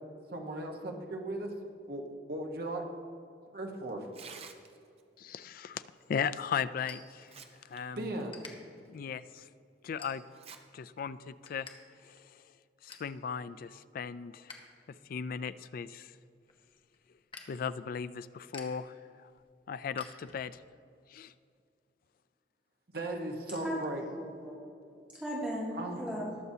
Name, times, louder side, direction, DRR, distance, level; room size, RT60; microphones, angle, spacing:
voice 1, 0.3-1.5 1.9-2.0 2.3-2.8 3.5-4.1 8.0-8.5 22.9-24.0 25.7-26.0, right 1 dB, 60° right, 2 dB, 1.2 m, -37 dB
Tearing, 4.0-5.0 6.5-6.6 7.1-7.8 8.2-8.3 8.9-9.0 10.3-10.6 11.0-11.1 11.9-12.2, right 6 dB, 35° right, 0.6 m, -50 dB
voice 2, 5.2-5.8 6.1-7.3 7.6-8.1 8.9-9.5 9.8-10.2 10.7-11.7 12.0-12.4 12.8-14.6 15.1-16.1 17.5-19.3 19.7-20.6 21.1-21.3, left 6 dB, 50° left, 15 dB, 0.3 m, -37 dB
sound 1, 6.0-7.8 8.1-8.5 9.1-9.3 9.8-10.5 10.9-11.8 12.0-12.1 12.5-13.1 13.6-14.6 14.9-20.7, left 4 dB, 30° left, 1.0 m, -53 dB
voice 3, 23.5-24.6 25.1-26.4, equal, 5° right, -7 dB, 1.8 m, -37 dB
19.5 x 6.8 x 2.8 m, 2.5 s
head